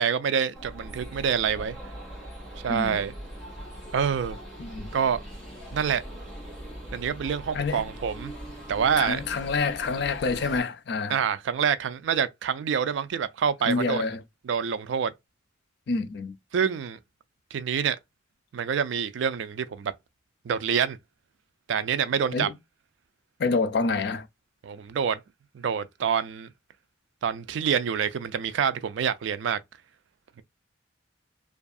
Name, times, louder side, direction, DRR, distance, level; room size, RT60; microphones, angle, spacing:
voice 1, 0.0-1.8 2.6-3.1 3.9-4.4 4.9-5.2 5.7-6.0 6.9-8.3 8.7-9.2 11.1-14.1 14.4-15.1 16.5-17.0 17.5-18.0 18.5-19.9 20.4-21.0 21.7-22.5 24.6-25.2 25.5-26.5 27.2-29.6, right 7 dB, 70° right, 0.3 m, -26 dB
sound 1, 0.5-10.6, equal, ahead, 1.2 m, -41 dB
voice 2, 7.5-7.8 9.0-11.2 13.6-14.2 15.9-16.3 22.3-22.5 23.4-24.3, left 4 dB, 55° left, 0.4 m, -27 dB
2.6 x 2.4 x 2.3 m
head